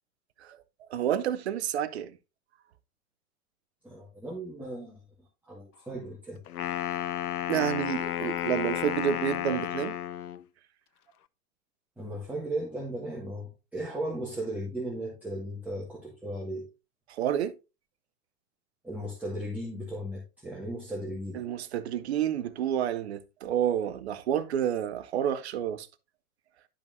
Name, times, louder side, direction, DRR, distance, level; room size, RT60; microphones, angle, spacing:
voice 1, 0.4-2.2 7.5-10.0 17.1-17.5 21.3-25.9, right 10 dB, 45° right, 0.7 m, -29 dB
voice 2, 3.8-5.0 5.5-6.4 12.0-16.7 18.8-21.4, right 1 dB, 5° right, 1.5 m, -36 dB
Wind instrument woodwind instrument, 6.5-10.4, left 11 dB, 75° left, 0.6 m, -32 dB
11.5 x 5.3 x 2.5 m
figure-of-eight pair, 105°, 46 cm